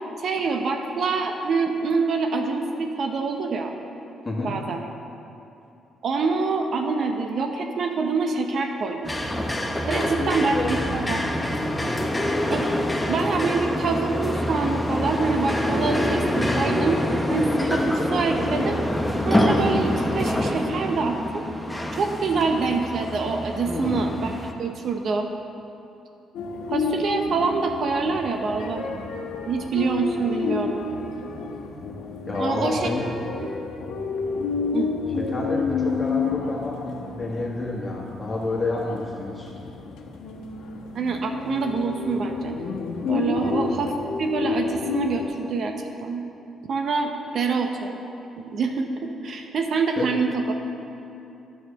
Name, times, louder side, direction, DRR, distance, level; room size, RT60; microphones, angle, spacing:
voice 1, 0.2-3.7 4.4-4.8 6.0-9.1 9.9-11.2 12.5-17.0 17.3-18.8 19.2-21.4 21.9-25.3 26.7-28.9 29.5-30.9 32.4-32.9 34.7-34.9 40.9-42.6 43.1-43.9 44.2-46.2 46.7-47.9 48.4-50.5, right 4 dB, 60° right, 4 dB, 0.8 m, -26 dB
sound 1, 9.0-24.5, left 1 dB, 10° left, 0.9 m, -26 dB
voice 2, 9.8-11.2 23.6-24.1 32.3-33.2 35.2-39.5 43.3-43.6 50.0-50.1, left 2 dB, 30° left, -4 dB, 1.7 m, -29 dB
sound 2, 26.3-45.2, left 4 dB, 85° left, 1.0 m, -30 dB
9.5 x 6.6 x 6.7 m, 2.8 s
cardioid pair, 90°, 0 cm